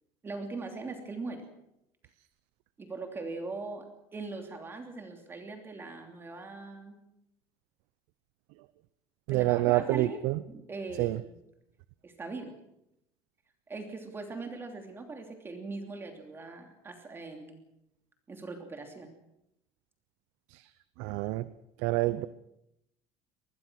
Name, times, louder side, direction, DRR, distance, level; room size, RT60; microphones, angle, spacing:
voice 1, 0.2-1.5 2.8-3.8 4.1-7.0 9.3-10.2 10.5-11.4 12.0-12.5 13.7-17.7 18.3-19.1 22.1-22.2, right 3 dB, 20° right, 4 dB, 3.0 m, -40 dB
voice 2, 9.3-10.4 11.0-11.2 20.5-20.6 21.0-21.5 21.8-22.3, right 18 dB, 85° right, 15 dB, 0.8 m, -27 dB
25.0 x 20.0 x 6.2 m, 0.83 s
cardioid pair, 140°, 11 cm